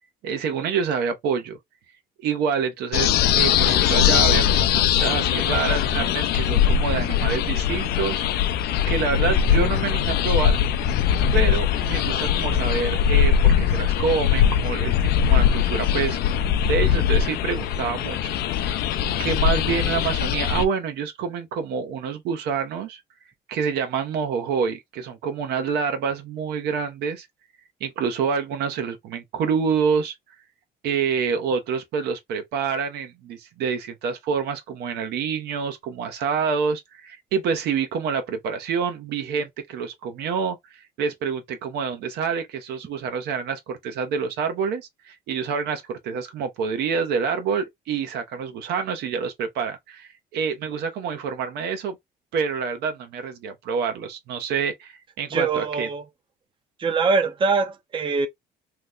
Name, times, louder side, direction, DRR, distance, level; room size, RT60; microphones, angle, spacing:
voice 1, 0.2-1.6 2.2-8.2 8.9-10.6 11.3-18.8 19.2-23.0 23.5-27.3 27.8-30.1 30.8-52.0 52.3-55.9, right 6 dB, 80° right, 0.8 m, -27 dB
sound 1, 2.9-20.7, left 9 dB, 70° left, 0.4 m, -21 dB
voice 2, 55.3-56.0 56.8-58.3, right 4 dB, 30° right, 0.5 m, -23 dB
2.9 x 2.1 x 3.6 m
cardioid pair, 110°, 17 cm